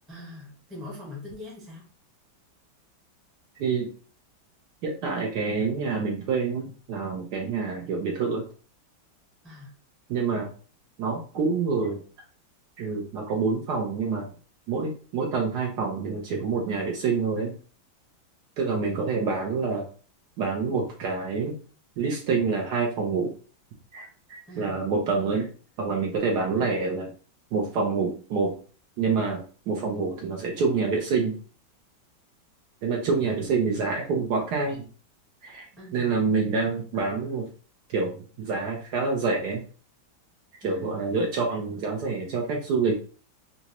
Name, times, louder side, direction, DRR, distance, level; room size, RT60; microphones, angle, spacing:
voice 1, 0.1-1.8 9.4-9.7 19.0-19.2 24.5-24.8 26.5-26.7 35.8-36.1 40.6-40.9, left 2 dB, ahead, -2 dB, 0.6 m, -42 dB
voice 2, 3.6-3.9 4.8-8.4 10.1-10.5 11.0-12.0 12.8-14.3 14.7-17.5 18.6-19.9 20.4-21.5 22.0-23.3 23.9-25.5 25.8-27.1 27.5-28.6 29.0-31.4 32.8-34.9 35.4-35.7 35.9-37.5 37.9-39.6 40.6-43.0, right 4 dB, 65° right, 0 dB, 1.1 m, -27 dB
4.0 x 2.4 x 2.9 m, 0.39 s
omnidirectional pair, 2.1 m